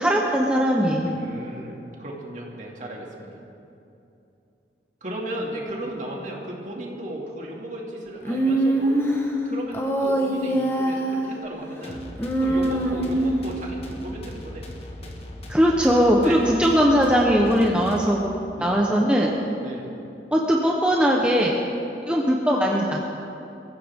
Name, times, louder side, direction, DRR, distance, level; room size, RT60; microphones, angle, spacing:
voice 1, 0.0-1.2 15.5-18.3 18.6-19.3 20.3-21.6 22.1-23.0, equal, 5° right, -2 dB, 0.9 m, -20 dB
voice 2, 1.0-3.4 5.0-8.9 9.4-12.0 12.4-14.7 15.0-15.1 16.2-16.4 18.5-18.8 19.6-19.8, right 1 dB, 45° right, -2 dB, 2.4 m, -35 dB
Human voice, 8.3-9.2 9.7-11.3 12.2-13.4, right 1 dB, 15° left, 1.3 m, -23 dB
sound 1, 11.8-18.5, left 1 dB, 35° left, 1.5 m, -39 dB
23.0 x 15.0 x 3.7 m, 2.8 s
head